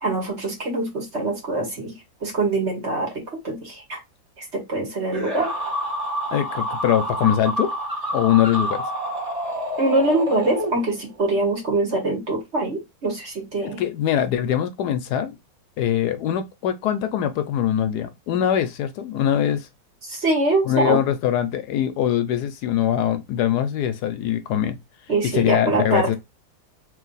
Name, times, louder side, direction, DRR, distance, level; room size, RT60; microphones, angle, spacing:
voice 1, 0.0-4.0 4.4-5.5 9.8-13.8 20.0-21.0 25.1-26.2, right 2 dB, 40° right, 1.7 m, -24 dB
sound 1, 5.1-11.2, equal, 25° right, 1.4 m, -28 dB
voice 2, 6.3-7.7 8.1-8.8 13.6-15.4 15.8-19.7 20.7-24.8 25.3-26.2, left 10 dB, 75° left, 1.1 m, -22 dB
3.2 x 3.1 x 3.9 m
omnidirectional pair, 1.8 m